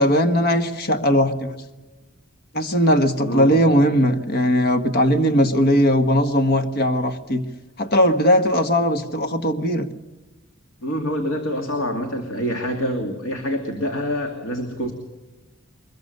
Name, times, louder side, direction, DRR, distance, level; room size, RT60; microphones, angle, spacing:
voice 1, 0.0-1.6 2.5-7.4 7.8-9.9, equal, 50° left, 8 dB, 1.5 m, -19 dB
voice 2, 3.2-3.6 10.8-14.9, equal, 90° left, 4 dB, 2.6 m, -26 dB
23.0 x 21.5 x 6.7 m, 1.2 s
head